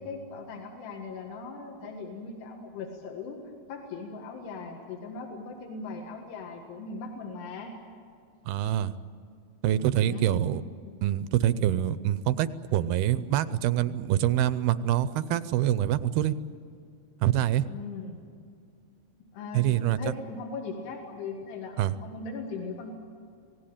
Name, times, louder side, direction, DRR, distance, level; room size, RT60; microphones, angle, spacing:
voice 1, 0.0-3.4 3.7-7.8 10.0-10.4 10.8-11.0 17.7-18.2 19.3-22.9, left 4 dB, 90° left, 1 dB, 3.9 m, -39 dB
voice 2, 8.5-8.9 9.6-10.6 11.0-16.3 17.2-17.6 19.5-20.1 21.8-21.9, right 12 dB, 80° right, 14 dB, 2.4 m, -25 dB
25.5 x 18.0 x 8.8 m, 2.4 s
omnidirectional pair, 4.6 m